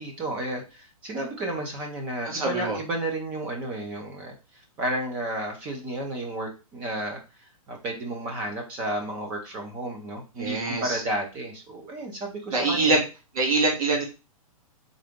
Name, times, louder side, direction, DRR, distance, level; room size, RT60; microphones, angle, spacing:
voice 1, 0.0-13.0, right 1 dB, 10° right, 2 dB, 0.4 m, -32 dB
voice 2, 2.2-2.8 10.4-11.0 12.5-13.0 13.3-14.0, right 3 dB, 70° right, -1 dB, 2.3 m, -24 dB
3.8 x 3.7 x 3.4 m, 0.30 s
hypercardioid pair, 175°, 19 cm